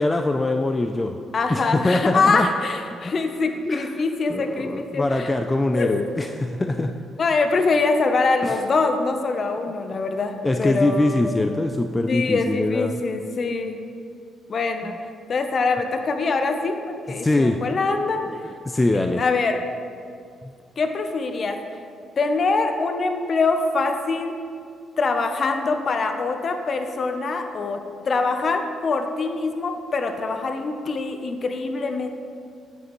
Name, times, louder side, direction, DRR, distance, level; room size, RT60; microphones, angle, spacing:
voice 1, 0.0-1.2 1.5-2.5 3.0-3.1 3.7-3.9 4.3-7.0 8.4-8.6 10.4-13.0 14.8-15.0 17.1-17.6 18.3-18.4 18.7-19.2 20.4-20.5, left 2 dB, 20° left, 5 dB, 0.3 m, -23 dB
voice 2, 1.3-5.3 5.7-6.0 7.2-11.3 12.1-13.8 14.5-14.9 15.3-18.2 19.2-19.6 20.8-21.6 22.2-24.3 25.0-27.8 28.1-32.1, left 3 dB, 45° left, 6 dB, 0.7 m, -24 dB
8.9 x 7.3 x 3.1 m, 2.3 s
cardioid pair, 90°, 0 cm